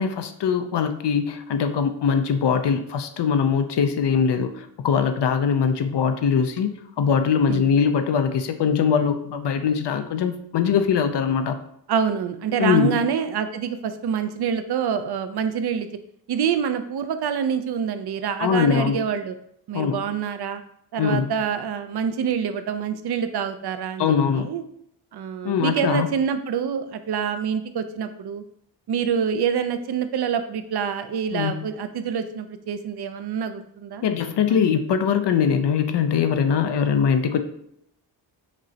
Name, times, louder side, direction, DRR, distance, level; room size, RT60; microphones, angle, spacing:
voice 1, 0.0-11.6 12.6-13.0 18.4-19.0 19.7-20.0 21.0-21.3 24.0-24.5 25.4-26.1 31.3-31.7 34.0-37.4, left 7 dB, 65° left, 7 dB, 0.5 m, -22 dB
voice 2, 11.9-15.9 16.3-19.3 19.7-20.6 20.9-24.6 25.1-28.4 28.9-34.6, right 7 dB, 60° right, 9 dB, 0.5 m, -26 dB
6.1 x 2.0 x 2.7 m, 0.72 s
cardioid pair, 60°, 46 cm